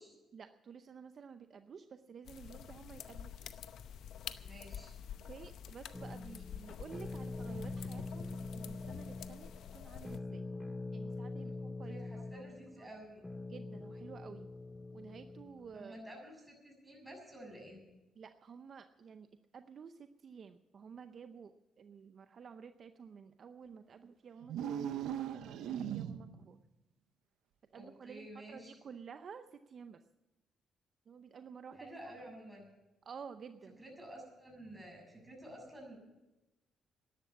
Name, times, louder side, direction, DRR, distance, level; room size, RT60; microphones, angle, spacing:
voice 1, 0.3-3.5 5.2-10.4 10.9-12.4 12.8-12.9 13.5-14.5 14.9-16.0 18.2-19.3 19.5-21.5 21.8-26.6 27.7-30.0 31.1-31.8 33.0-33.8, right 6 dB, 50° right, 9 dB, 0.6 m, -52 dB
sound 1, 2.2-10.2, left 9 dB, 75° left, 0.7 m, -48 dB
voice 2, 4.4-4.9 11.4-11.5 11.9-13.2 15.7-17.8 27.7-28.7 31.8-32.7 33.8-36.0, right 1 dB, 15° right, 0 dB, 6.9 m, -51 dB
sound 2, 5.9-15.8, left 2 dB, 15° left, 0.7 m, -44 dB
sound 3, 24.4-26.5, right 9 dB, 85° right, 0.8 m, -38 dB
12.5 x 11.0 x 8.4 m, 1.0 s
cardioid pair, 90°, 0 cm